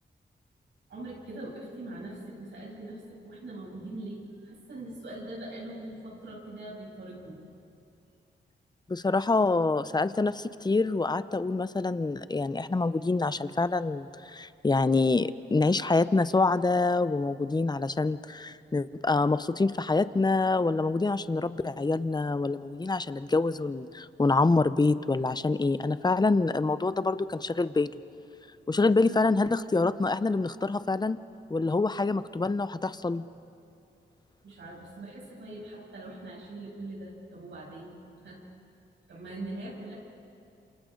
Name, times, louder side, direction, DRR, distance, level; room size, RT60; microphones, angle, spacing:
voice 1, 0.9-7.4 29.0-29.2 34.4-37.9 38.2-38.4 39.1-40.0, right 2 dB, 80° right, -4 dB, 7.3 m, -42 dB
voice 2, 8.9-27.9 28.7-31.2 31.5-33.2, left 3 dB, 20° left, 14 dB, 0.7 m, -26 dB
28.0 x 27.5 x 3.9 m, 2.6 s
cardioid pair, 65°, 19 cm